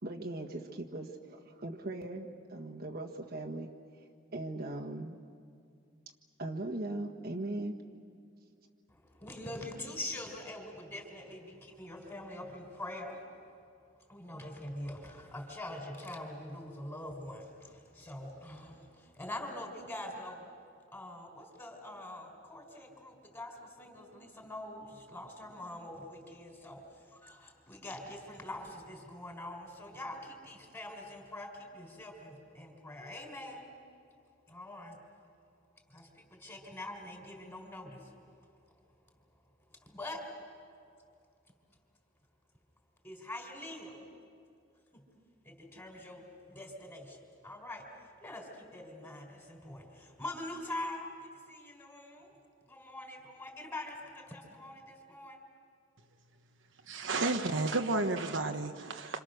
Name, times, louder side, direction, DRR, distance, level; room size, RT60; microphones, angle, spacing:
voice 1, 0.0-3.7 4.3-5.2 6.4-7.7, right 2 dB, 50° right, 0 dB, 1.6 m, -39 dB
voice 2, 8.9-13.2 14.1-20.5 20.9-33.7 34.5-35.0 35.9-38.1 39.9-40.3 43.0-44.0 44.9-45.0 45.4-52.3 52.6-55.4, left 1 dB, 15° left, 2 dB, 4.0 m, -44 dB
voice 3, 56.9-59.2, right 3 dB, 65° right, 5 dB, 1.1 m, -32 dB
28.0 x 27.0 x 6.5 m, 2.3 s
head